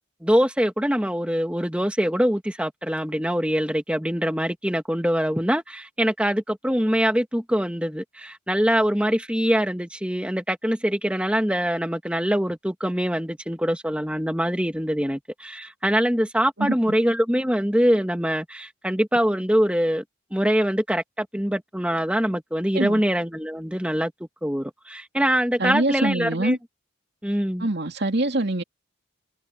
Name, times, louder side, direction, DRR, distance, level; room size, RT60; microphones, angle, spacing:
voice 1, 0.2-20.0 20.3-24.1 24.4-26.6 27.2-27.7, equal, 5° right, 2.1 m, -23 dB
voice 2, 16.6-16.9 22.7-23.0 25.6-26.6 27.6-28.6, right 2 dB, 50° right, 2.8 m, -24 dB
head